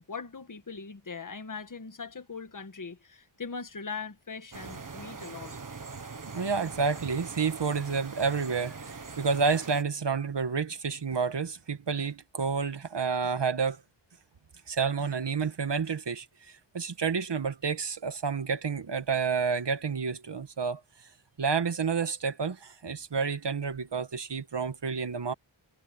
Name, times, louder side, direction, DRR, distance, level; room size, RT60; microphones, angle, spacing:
voice 1, 0.0-5.5, left 5 dB, 40° left, 1.7 m, -40 dB
sound 1, 4.5-9.8, right 4 dB, 40° right, 1.6 m, -42 dB
voice 2, 6.3-13.8 14.7-16.2 16.7-20.8 21.4-25.3, right 5 dB, 55° right, 1.7 m, -29 dB
wide cardioid pair, 80°, 49 cm